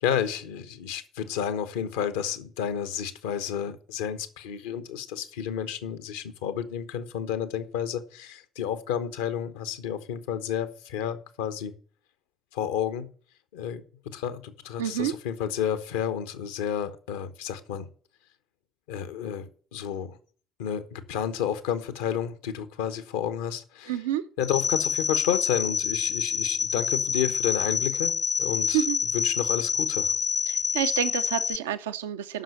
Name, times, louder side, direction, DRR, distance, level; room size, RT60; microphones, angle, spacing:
voice 1, 0.0-11.7 12.5-13.1 13.5-17.9 18.9-20.2 20.6-24.0 24.4-28.8 29.1-30.1, left 9 dB, 70° left, 11 dB, 1.0 m, -31 dB
voice 2, 14.8-15.1 23.9-24.2 28.7-29.0 30.5-32.4, right 11 dB, 75° right, 10 dB, 0.6 m, -28 dB
sound 1, 24.4-31.6, left 6 dB, 45° left, 0.8 m, -27 dB
9.2 x 6.2 x 8.4 m, 0.42 s
figure-of-eight pair, 50°, 0 cm